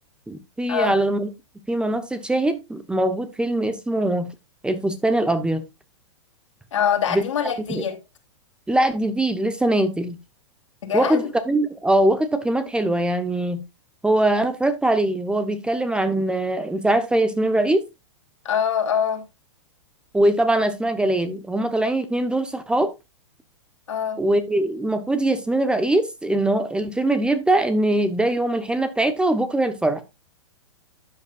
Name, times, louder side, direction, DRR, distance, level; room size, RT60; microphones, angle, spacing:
voice 1, 0.3-1.3 1.7-4.3 4.6-5.6 7.1-7.2 7.7-7.8 8.7-10.2 10.9-13.6 14.0-17.8 20.1-22.9 24.2-30.0, right 1 dB, 5° right, 1.0 m, -22 dB
voice 2, 6.7-8.0 10.9-11.3 18.4-19.2 23.9-24.2, left 8 dB, 75° left, 3.1 m, -24 dB
12.5 x 8.3 x 2.4 m
hypercardioid pair, 115°, 16 cm